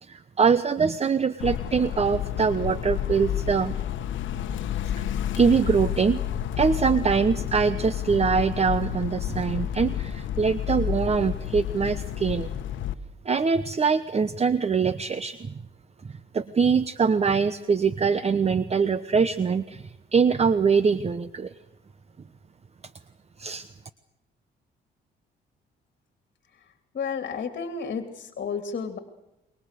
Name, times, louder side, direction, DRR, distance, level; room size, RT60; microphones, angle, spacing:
voice 1, 0.0-3.8 5.0-5.1 5.4-6.2 6.6-12.5 13.2-15.5 16.3-21.5 23.4-23.7, right 5 dB, 30° right, 14 dB, 0.9 m, -23 dB
sound 1, 1.4-12.9, left 10 dB, 75° left, 1.1 m, -30 dB
voice 2, 26.9-29.0, left 5 dB, 50° left, 7 dB, 2.6 m, -31 dB
27.0 x 23.5 x 6.7 m, 0.91 s
cardioid pair, 90°, 20 cm